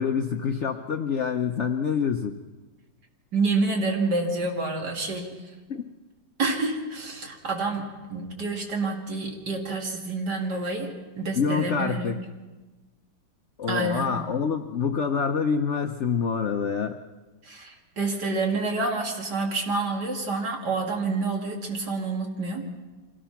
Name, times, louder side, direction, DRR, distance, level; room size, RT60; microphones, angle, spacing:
voice 1, 0.0-2.4 5.7-5.9 11.3-12.2 13.6-17.0, left 6 dB, 60° left, 6 dB, 0.7 m, -26 dB
voice 2, 3.3-5.3 6.4-12.2 13.7-14.1 17.4-22.7, right 3 dB, 55° right, 1 dB, 2.8 m, -28 dB
25.5 x 17.5 x 5.8 m, 1.2 s
omnidirectional pair, 2.2 m